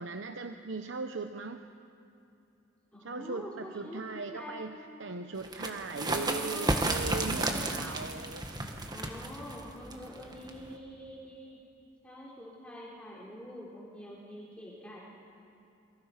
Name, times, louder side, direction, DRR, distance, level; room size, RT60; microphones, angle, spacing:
voice 1, 0.0-1.7 3.0-8.5, right 3 dB, 80° right, 6 dB, 0.9 m, -39 dB
voice 2, 2.9-4.6 5.7-7.9 8.9-11.6 12.0-15.0, equal, 5° left, -6 dB, 3.9 m, -45 dB
sound 1, 5.4-10.8, right 2 dB, 20° right, 1.8 m, -33 dB
29.0 x 24.0 x 5.9 m, 2.7 s
head